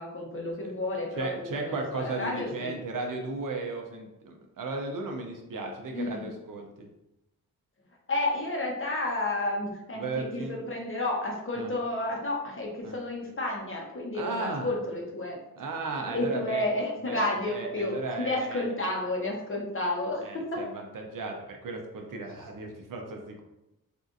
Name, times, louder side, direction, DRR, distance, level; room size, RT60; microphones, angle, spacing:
voice 1, 0.0-2.8 5.9-6.3 8.1-15.4 16.1-20.6, left 2 dB, 35° left, -1 dB, 0.9 m, -31 dB
voice 2, 1.2-6.9 10.0-10.6 11.6-11.7 12.8-13.0 14.1-14.7 15.6-16.6 17.1-18.7 20.2-23.4, right 3 dB, 60° right, 2 dB, 0.7 m, -35 dB
3.6 x 2.5 x 2.6 m, 0.90 s
cardioid pair, 65°, 36 cm